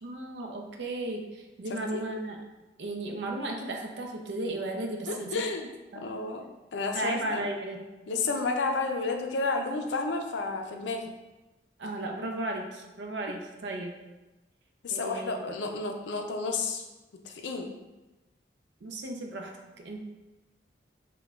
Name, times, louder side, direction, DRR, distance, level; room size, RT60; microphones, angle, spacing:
voice 1, 0.0-2.4 2.8-5.3 5.9-6.1 6.9-7.8 11.8-13.9 14.9-15.5 18.8-20.0, right 2 dB, 75° right, 2 dB, 0.5 m, -35 dB
voice 2, 5.1-5.6 6.0-6.4 6.7-7.4 8.1-11.1 14.8-16.8 17.2-17.7, left 3 dB, 80° left, 3 dB, 0.4 m, -31 dB
4.7 x 2.2 x 2.3 m, 1.1 s
head